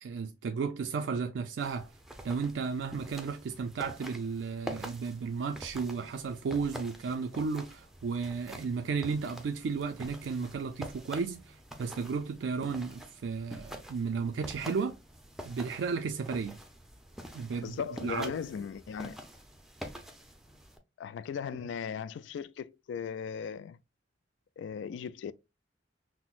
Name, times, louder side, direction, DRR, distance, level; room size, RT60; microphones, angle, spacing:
voice 1, 0.0-1.9 2.2-15.0 15.4-16.6 17.3-18.3, right 5 dB, 75° right, 0.4 m, -34 dB
sound 1, 1.6-20.8, equal, ahead, 0.5 m, -47 dB
voice 2, 17.6-19.2 21.0-23.8 24.6-25.3, left 7 dB, 75° left, 0.3 m, -38 dB
5.8 x 2.0 x 2.4 m
head